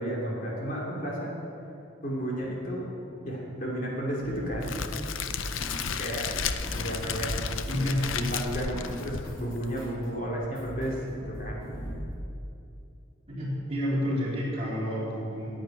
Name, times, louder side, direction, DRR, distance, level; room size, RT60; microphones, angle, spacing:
voice 1, 0.0-1.3 2.0-2.9 3.2-4.8 5.5-5.6 6.0-6.3 6.7-11.0 11.2-11.7, equal, 40° left, -4 dB, 2.6 m, -33 dB
sound 1, 4.2-5.9 6.1-10.0 10.4-10.9 11.2-12.0, equal, 20° left, 3.1 m, -39 dB
Crackle, 4.6-9.7, left 7 dB, 75° left, 0.6 m, -34 dB
voice 2, 7.7-8.0 13.3-15.6, equal, 30° right, -7 dB, 3.6 m, -30 dB
10.5 x 9.0 x 8.8 m, 2.6 s
head